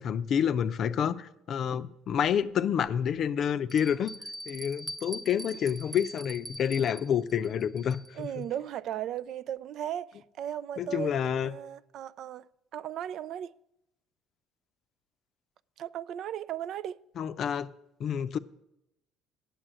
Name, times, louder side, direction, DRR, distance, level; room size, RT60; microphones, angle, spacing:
voice 1, 0.0-4.1 4.5-8.5 10.8-11.5 17.2-17.7 18.0-18.4, left 8 dB, 55° left, 0.5 m, -28 dB
Bell, 2.1-2.2 2.9-3.0 3.7-8.3, right 1 dB, 15° right, 0.7 m, -43 dB
voice 2, 8.2-11.1 11.4-12.5 12.7-13.5 15.8-17.0, right 10 dB, 60° right, 0.3 m, -36 dB
8.9 x 7.0 x 8.8 m
supercardioid pair, 90°, 0 cm